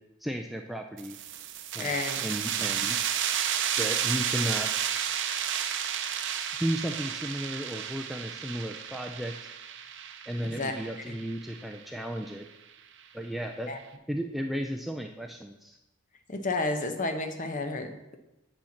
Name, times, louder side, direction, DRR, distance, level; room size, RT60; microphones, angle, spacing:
voice 1, 0.2-1.2 1.7-3.0 3.8-4.7 6.6-9.5 10.3-12.5 13.1-13.7 14.1-15.8, equal, ahead, 2 dB, 0.4 m, -34 dB
sound 1, 1.0-12.3, right 9 dB, 55° right, 0.6 m, -32 dB
voice 2, 1.8-2.2 10.4-10.7 11.0-11.2 13.7-13.8 16.3-18.2, left 3 dB, 35° left, 6 dB, 0.9 m, -31 dB
8.9 x 4.4 x 7.1 m, 0.95 s
head